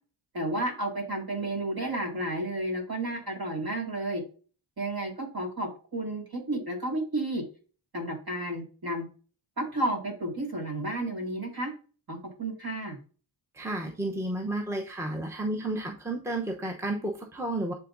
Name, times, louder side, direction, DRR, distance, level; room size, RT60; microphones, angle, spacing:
voice 1, 0.3-4.2 4.8-7.4 7.9-9.1 9.6-11.7 12.1-13.0, right 1 dB, 45° right, 1 dB, 2.2 m, -32 dB
voice 2, 13.5-17.7, right 1 dB, 5° right, 2 dB, 0.8 m, -32 dB
10.0 x 3.6 x 2.6 m, 0.37 s
wide cardioid pair, 85°, 49 cm